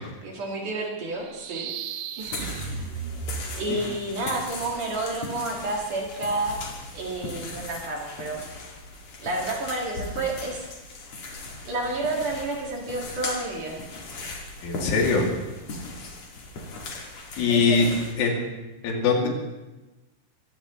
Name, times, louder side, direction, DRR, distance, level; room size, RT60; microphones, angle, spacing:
voice 1, 0.0-1.7 2.2-2.5 3.6-6.6 6.9-8.4 9.2-10.6 11.6-13.8 17.5-17.9, right 2 dB, 50° right, -1 dB, 2.9 m, -30 dB
sound 1, 1.2-4.0, right 6 dB, 90° right, 3.5 m, -35 dB
sound 2, 2.2-18.1, left 3 dB, 45° left, 2.7 m, -38 dB
voice 2, 14.6-15.3 17.4-17.9 18.2-18.5 18.8-19.3, left 4 dB, 90° left, 0 dB, 5.0 m, -22 dB
23.0 x 16.5 x 3.1 m, 1.1 s
omnidirectional pair, 5.4 m